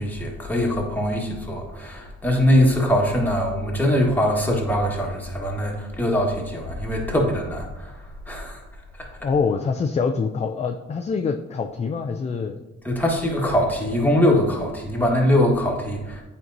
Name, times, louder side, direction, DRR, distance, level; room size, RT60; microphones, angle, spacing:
voice 1, 0.0-7.9 8.3-8.6 9.0-9.1 12.8-16.2, left 1 dB, 5° left, -1 dB, 1.4 m, -22 dB
voice 2, 9.2-12.6, left 5 dB, 25° left, 5 dB, 0.4 m, -25 dB
8.4 x 4.5 x 2.6 m, 1.1 s
cardioid pair, 90°, 30 cm